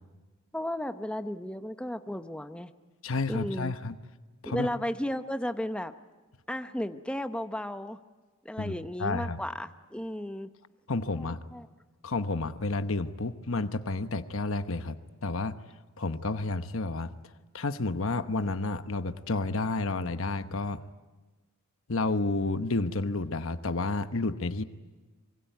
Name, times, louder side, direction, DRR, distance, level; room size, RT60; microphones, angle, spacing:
voice 1, 0.5-2.7 3.3-3.7 4.4-5.9 6.5-8.0 8.4-10.5 11.1-11.7, left 1 dB, 5° left, 8 dB, 0.8 m, -34 dB
voice 2, 3.0-4.0 4.4-4.7 8.6-8.7 9.0-9.4 10.9-11.4 12.0-15.0 15.2-15.6 16.0-17.1 17.5-20.8 21.9-24.6, left 3 dB, 65° left, 10 dB, 1.0 m, -30 dB
25.5 x 23.5 x 9.3 m, 1.3 s
head